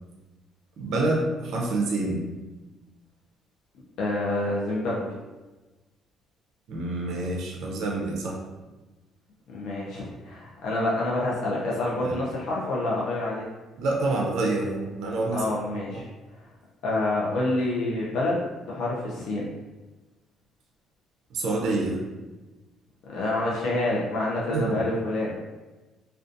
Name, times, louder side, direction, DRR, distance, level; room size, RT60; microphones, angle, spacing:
voice 1, 0.8-2.3 6.7-8.4 12.0-12.2 13.8-15.4 15.9-16.0 21.3-22.0 24.5-24.8, right 2 dB, 70° right, -1 dB, 0.4 m, -27 dB
voice 2, 4.0-5.1 9.5-13.4 15.3-16.0 16.8-19.5 23.1-25.4, left 2 dB, 75° left, -5 dB, 0.5 m, -27 dB
2.5 x 2.2 x 2.5 m, 1.2 s
cardioid pair, 125°, 0 cm